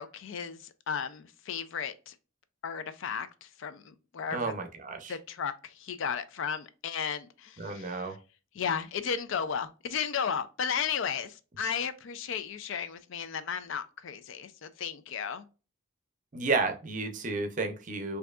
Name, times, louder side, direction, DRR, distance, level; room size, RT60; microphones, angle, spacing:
voice 1, 0.0-2.1 2.6-4.5 5.1-8.2 8.5-15.5, left 7 dB, 60° left, 0.4 m, -34 dB
voice 2, 4.3-5.2 7.6-8.2 16.3-18.2, right 3 dB, 35° right, 0.6 m, -32 dB
4.5 x 2.7 x 2.3 m
head